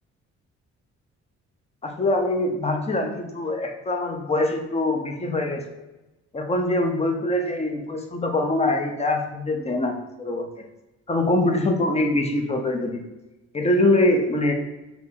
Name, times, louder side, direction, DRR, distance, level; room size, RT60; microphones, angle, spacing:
voice 1, 1.8-5.6 6.3-10.5 11.1-13.0 13.5-14.5, left 2 dB, 20° left, 3 dB, 0.7 m, -23 dB
3.4 x 2.9 x 4.2 m, 1.0 s
cardioid pair, 90°, 30 cm